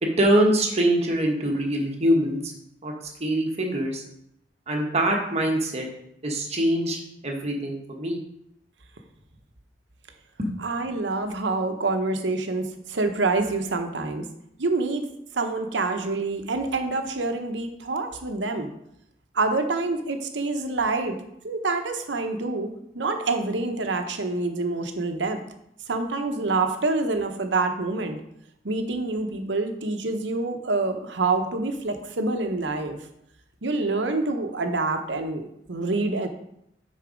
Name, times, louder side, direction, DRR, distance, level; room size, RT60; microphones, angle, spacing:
voice 1, 0.0-2.5 2.8-2.9 3.2-4.0 4.7-5.9 6.2-8.2 10.4-10.5, right 1 dB, 35° right, 1 dB, 1.3 m, -24 dB
voice 2, 10.6-14.2 14.6-15.0 15.3-18.7 19.3-21.2 21.4-22.7 22.9-25.4 25.9-28.2 28.6-33.0 33.6-36.3, right 3 dB, 80° right, 6 dB, 0.9 m, -26 dB
6.8 x 4.3 x 5.1 m, 0.77 s
head